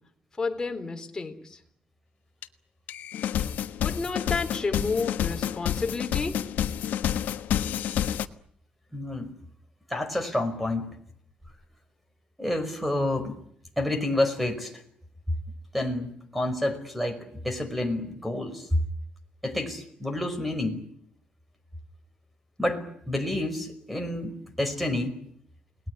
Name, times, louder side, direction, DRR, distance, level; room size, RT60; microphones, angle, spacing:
voice 1, 0.4-1.6 3.8-6.4, left 4 dB, 20° left, 4 dB, 3.8 m, -31 dB
sound 1, 2.4-2.5 2.9-8.3, left 10 dB, 85° left, 1.3 m, -29 dB
voice 2, 8.9-9.3 9.9-10.9 12.4-13.3 13.8-14.7 15.7-18.7 19.4-20.8 22.6-25.2, left 1 dB, ahead, 9 dB, 5.4 m, -29 dB
29.5 x 19.5 x 9.7 m, 0.68 s
cardioid pair, 120°, 3 cm